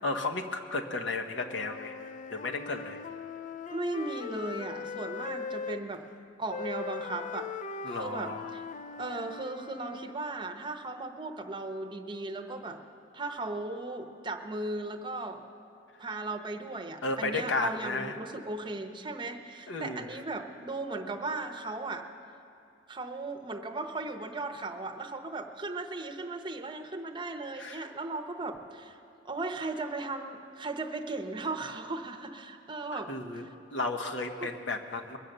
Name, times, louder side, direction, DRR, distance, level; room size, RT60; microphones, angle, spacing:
voice 1, 0.0-1.9 2.3-3.0 7.8-8.5 17.0-18.2 19.7-20.1 27.6-27.9 33.1-35.2, left 3 dB, 85° left, 4 dB, 1.1 m, -33 dB
Wind instrument woodwind instrument, 1.4-5.8 6.5-10.2, left 5 dB, 45° left, 0.4 m, -40 dB
voice 2, 3.7-6.0 6.4-7.5 7.9-8.6 9.0-12.8 13.1-15.4 16.0-22.0 22.9-29.0 29.2-33.5 34.4-34.5, right 2 dB, 25° right, 5 dB, 0.8 m, -37 dB
22.0 x 7.4 x 6.7 m, 2.7 s
head